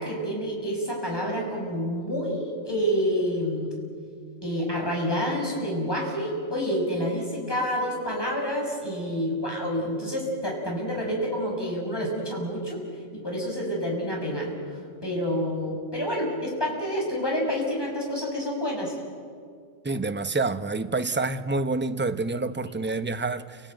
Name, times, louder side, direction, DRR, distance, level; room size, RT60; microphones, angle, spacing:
voice 1, 0.0-3.7 4.4-12.8 13.1-19.0, equal, 20° left, -1 dB, 6.6 m, -28 dB
voice 2, 19.8-23.6, right 3 dB, 10° right, 10 dB, 0.7 m, -27 dB
29.5 x 19.5 x 9.1 m, 2.1 s
omnidirectional pair, 1.3 m